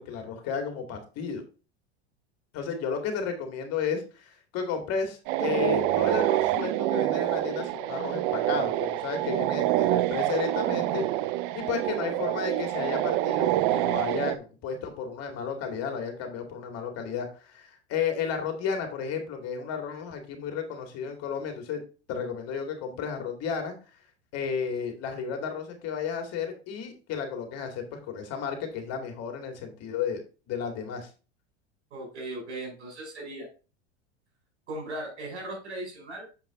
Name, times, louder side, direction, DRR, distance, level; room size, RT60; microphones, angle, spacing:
voice 1, 0.0-1.4 2.5-11.0 11.5-21.8 22.1-23.7 24.3-30.2 30.5-31.1, left 6 dB, 45° left, 5 dB, 2.3 m, -33 dB
sound 1, 5.3-14.4, right 15 dB, 55° right, 0.6 m, -26 dB
voice 2, 31.9-33.5 34.7-36.3, right 1 dB, 85° right, 0 dB, 4.5 m, -38 dB
7.1 x 5.3 x 3.7 m, 0.34 s
hypercardioid pair, 100°, 33 cm